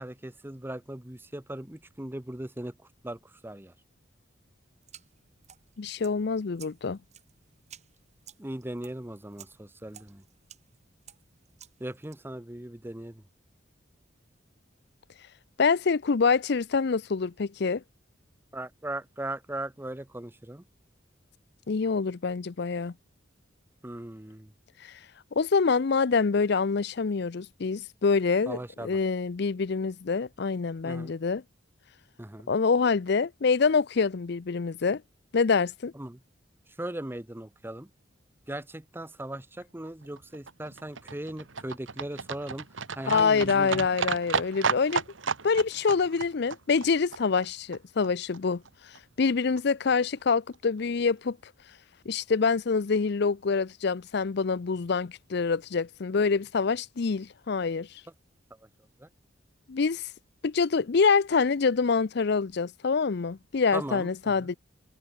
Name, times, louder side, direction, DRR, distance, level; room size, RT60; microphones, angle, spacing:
voice 1, 0.0-2.7 3.0-3.7 8.4-10.2 11.8-13.2 18.5-20.6 23.8-24.5 28.5-29.0 30.8-31.1 32.2-32.5 35.9-36.2 36.8-37.9 38.5-42.7 42.9-43.9 59.0-59.1 63.7-64.5, right 1 dB, 10° right, 0.8 m, -38 dB
sound 1, 4.8-12.1, right 9 dB, 35° right, 3.2 m, -55 dB
voice 2, 5.8-7.0 15.6-17.8 21.7-22.9 25.3-31.4 32.5-35.0 35.3-35.9 43.1-45.0 45.4-48.6 49.2-51.4 52.1-57.9 59.7-60.0 60.4-64.5, left 5 dB, 60° left, 0.5 m, -26 dB
Livestock farm animals working animals, 39.9-48.1 48.3-48.4 48.7-48.8 49.0-49.1 49.3-49.4 49.6-49.7 49.9-50.0 50.2-50.3 50.5-50.6, right 5 dB, 85° right, 1.6 m, -34 dB
head